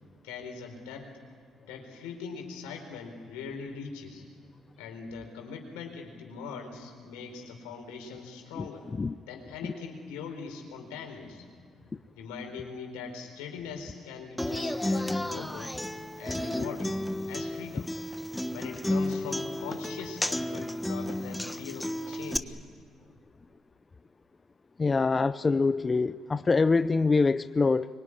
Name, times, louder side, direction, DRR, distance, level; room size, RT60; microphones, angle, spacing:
voice 1, 0.2-1.1 1.6-4.2 4.8-8.9 9.2-11.5 11.8-15.7 16.2-17.9 18.5-22.6, left 5 dB, 85° left, 3 dB, 4.3 m, -41 dB
Human voice / Acoustic guitar, 14.4-22.4, left 1 dB, 5° left, 1.3 m, -32 dB
voice 2, 24.8-27.9, left 4 dB, 35° left, 13 dB, 0.6 m, -24 dB
25.5 x 23.5 x 9.9 m, 2.1 s
hypercardioid pair, 55°, 0 cm